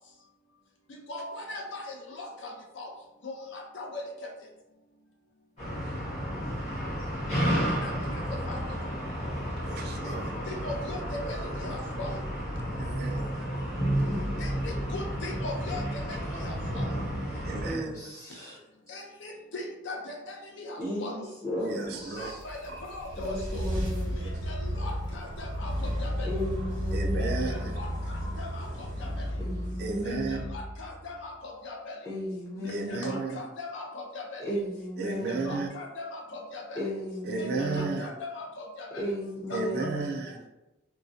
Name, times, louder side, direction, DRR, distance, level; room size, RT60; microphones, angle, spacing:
voice 1, 1.1-2.9 3.2-4.3 7.5-8.2 8.5-8.6 10.0-10.1 10.5-12.1 14.4-16.9 18.9-21.3 21.9-23.7 24.2-26.3 27.2-29.3 30.0-32.0 32.6-34.4 35.0-36.8 37.4-39.0 39.5-39.9, left 2 dB, 65° left, 0 dB, 0.5 m, -40 dB
sound 1, 5.6-17.7, equal, 35° left, 0.9 m, -31 dB
voice 2, 9.6-10.4 12.8-13.7 17.4-18.1 21.6-22.3 22.7-22.8 26.9-27.8 29.8-30.4 32.6-33.4 35.0-35.7 37.2-38.1 39.5-40.5, right 3 dB, 50° right, 3 dB, 0.3 m, -34 dB
voice 3, 17.6-18.6 20.8-22.4 23.2-24.3 26.3-27.7 29.4-30.6 32.1-33.2 34.4-35.6 36.7-37.9 39.0-40.1, left 1 dB, 15° left, -9 dB, 0.6 m, -35 dB
sound 2, 22.0-31.3, equal, 80° right, 0.8 m, -33 dB
2.3 x 2.1 x 2.6 m, 0.96 s
head